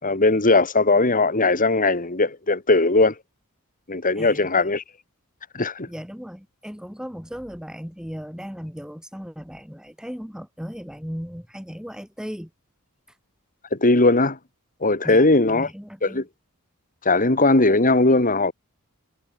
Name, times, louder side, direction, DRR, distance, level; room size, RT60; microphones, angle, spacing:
voice 1, 0.0-3.1 3.9-4.8 5.5-5.9 13.7-14.4 14.8-15.7 16.0-16.2 17.0-18.5, left 2 dB, 40° left, 2.6 m, -19 dB
voice 2, 4.1-4.7 5.9-12.5 15.0-16.2, equal, 5° right, 5.9 m, -37 dB
head